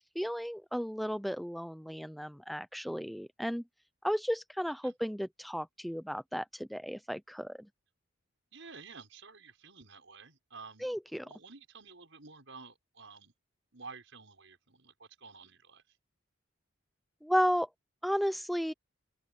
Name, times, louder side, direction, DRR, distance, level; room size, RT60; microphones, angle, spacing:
voice 1, 0.2-3.6 4.0-7.7 10.8-11.3 17.2-17.7 18.0-18.7, equal, ahead, 0.6 m, -33 dB
voice 2, 8.5-10.9 11.2-13.3 13.7-16.0, right 4 dB, 65° right, 5.9 m, -51 dB
open air
head